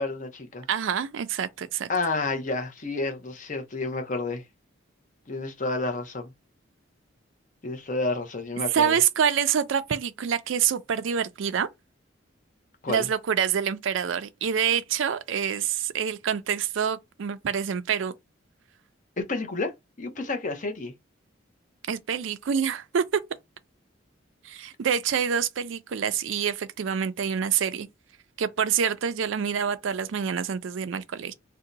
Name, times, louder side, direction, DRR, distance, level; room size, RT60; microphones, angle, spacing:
voice 1, 0.0-0.7 1.9-4.4 5.3-6.3 7.6-9.0 12.8-13.1 19.2-20.9, left 3 dB, 40° left, 0.7 m, -30 dB
voice 2, 0.7-1.9 8.7-11.7 12.9-18.1 21.9-23.0 24.4-27.9 28.4-31.3, right 7 dB, 75° right, 0.4 m, -26 dB
2.7 x 2.2 x 3.8 m
head